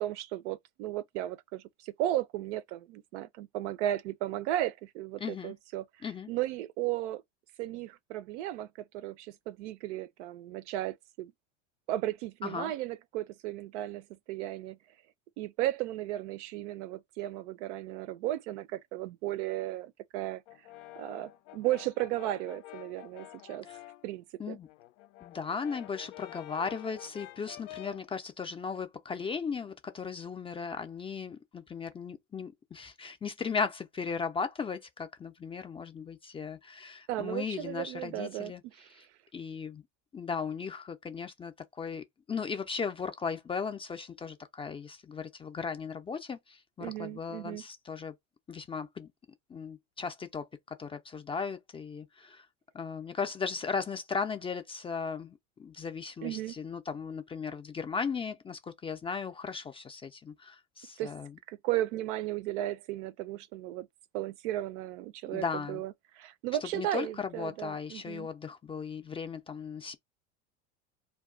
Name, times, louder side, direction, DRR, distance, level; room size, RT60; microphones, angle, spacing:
voice 1, 0.0-5.8 6.3-7.2 7.6-11.3 11.9-14.8 15.4-20.4 21.0-23.7 24.0-24.6 37.1-38.9 46.8-47.6 56.2-56.6 61.0-61.1 61.5-63.9 64.1-68.3, right 14 dB, 75° right, 0.5 m, -35 dB
voice 2, 5.2-5.5 6.0-6.3 12.4-12.7 23.7-23.8 24.4-24.7 25.2-38.6 38.9-39.0 39.3-39.8 40.1-48.1 48.5-49.1 49.5-52.5 52.7-61.3 65.3-65.8 66.6-69.9, left 5 dB, 15° left, 0.4 m, -37 dB
Brass instrument, 20.5-24.1 24.5-28.1, left 15 dB, 80° left, 0.5 m, -49 dB
2.3 x 2.2 x 3.6 m
hypercardioid pair, 100°, 36 cm